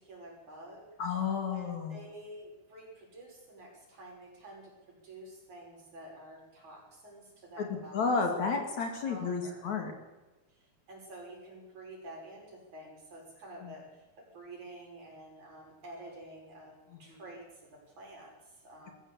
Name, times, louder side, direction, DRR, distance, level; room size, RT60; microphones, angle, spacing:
voice 1, 0.0-0.8 1.4-8.1 8.4-8.5 9.1-9.7 10.5-18.9, right 1 dB, 50° right, -1 dB, 7.6 m, -49 dB
voice 2, 1.0-2.0 7.6-9.9 13.6-13.7 17.1-17.2, left 5 dB, 55° left, 4 dB, 3.6 m, -32 dB
21.5 x 15.0 x 8.3 m, 1.1 s
omnidirectional pair, 4.2 m